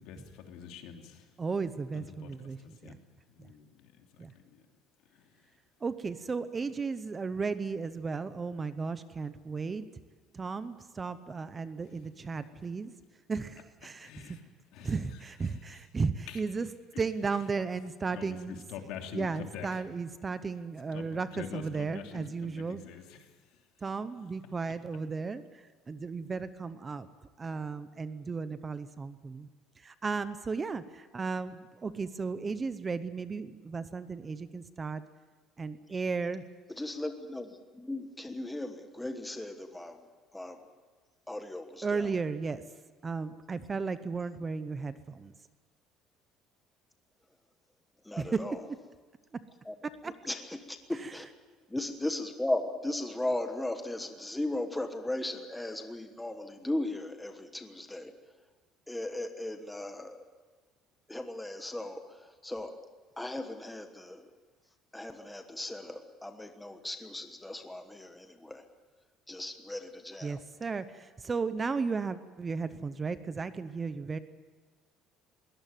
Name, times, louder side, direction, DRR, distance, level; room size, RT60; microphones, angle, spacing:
voice 1, 0.0-1.4 1.9-3.0 3.3-4.6 5.1-5.5 14.0-14.4 14.7-15.8 16.3-16.4 16.9-17.0 18.1-19.8 20.9-23.6, left 8 dB, 70° left, 3 dB, 3.0 m, -46 dB
voice 2, 1.4-2.6 2.8-3.0 4.2-4.3 5.8-9.9 10.3-12.9 13.3-14.4 14.8-16.7 17.0-18.6 19.1-22.8 23.8-27.1 27.4-29.5 29.8-35.0 35.6-36.4 41.8-42.6 43.0-45.3 48.2-48.8 49.3-49.4 49.8-50.1 50.9-51.3 70.2-74.2, right 4 dB, 20° right, 13 dB, 0.8 m, -35 dB
voice 3, 36.8-37.5 37.7-40.0 40.3-40.6 41.3-42.0 48.1-48.5 49.7-49.8 50.3-50.4 50.7-51.3 51.7-58.1 58.9-60.2 61.1-62.0 62.4-62.7 63.2-64.2 64.9-68.6 69.3-70.4, left 1 dB, 5° left, 6 dB, 1.3 m, -36 dB
22.0 x 18.5 x 9.1 m, 1.4 s
cardioid pair, 170°, 0 cm